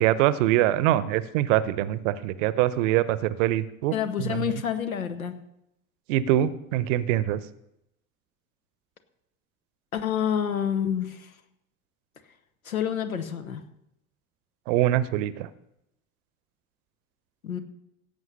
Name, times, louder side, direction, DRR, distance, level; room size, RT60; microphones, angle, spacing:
voice 1, 0.0-3.9 4.2-4.5 6.1-7.4 14.7-15.5, right 13 dB, 60° right, 17 dB, 0.8 m, -24 dB
voice 2, 3.9-5.3 9.9-11.3 12.6-13.6 17.4-17.6, left 9 dB, 85° left, 9 dB, 1.1 m, -28 dB
17.0 x 7.8 x 5.5 m, 0.82 s
figure-of-eight pair, 60°, 41 cm